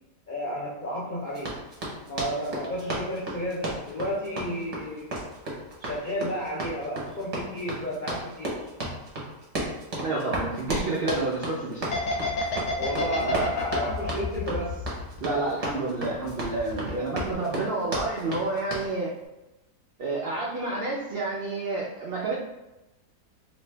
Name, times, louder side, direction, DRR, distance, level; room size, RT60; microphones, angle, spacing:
voice 1, 0.3-1.5 2.1-5.1 5.8-8.6 12.8-14.8 16.8-17.0, equal, 55° left, -8 dB, 0.5 m, -32 dB
Run, 1.3-18.9, right 1 dB, 30° right, 0.7 m, -34 dB
voice 2, 10.0-11.8 13.1-13.4 15.2-19.1 20.0-22.3, right 3 dB, 75° right, -4 dB, 0.5 m, -29 dB
sound 1, 11.9-15.6 15.9-16.9 17.2-17.3, left 3 dB, 80° left, 1.2 m, -29 dB
3.0 x 2.6 x 3.2 m, 0.98 s
omnidirectional pair, 1.6 m